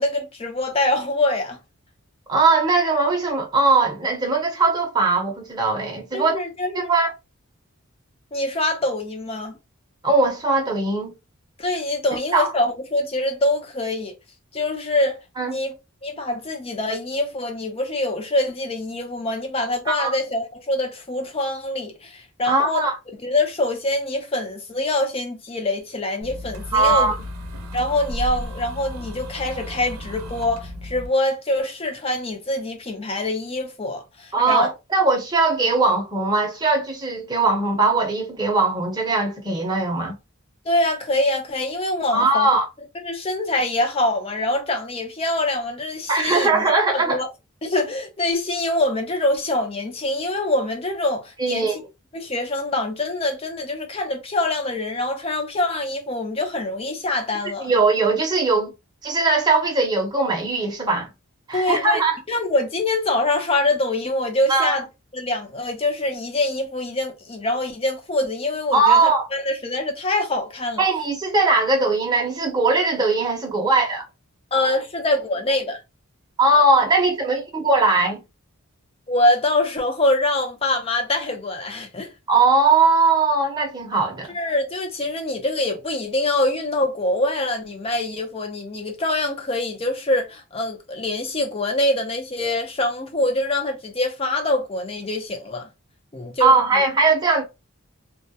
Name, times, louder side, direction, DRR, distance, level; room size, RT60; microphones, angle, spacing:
voice 1, 0.0-1.6 6.1-6.9 8.3-9.6 11.6-14.2 14.5-15.2 15.5-15.7 16.0-22.9 23.2-27.2 27.7-34.7 40.6-42.5 43.0-47.3 47.6-51.8 52.1-57.7 61.5-62.0 62.3-64.9 65.1-70.8 74.5-75.8 79.1-82.1 84.3-95.7 96.1-96.6, left 2 dB, 25° left, 0.5 m, -24 dB
voice 2, 2.3-6.4 6.7-7.1 10.0-11.1 12.3-12.5 15.4-15.6 19.9-20.1 22.5-23.0 26.7-27.2 34.3-40.1 42.1-42.7 46.1-47.2 51.4-51.8 57.6-58.7 59.0-61.1 61.5-62.2 64.5-64.8 68.7-69.3 70.8-74.0 76.4-78.2 82.3-84.3 96.4-97.4, right 3 dB, 20° right, 0.7 m, -20 dB
sound 1, 26.2-31.1, equal, 75° right, 0.6 m, -34 dB
2.3 x 2.1 x 2.6 m
head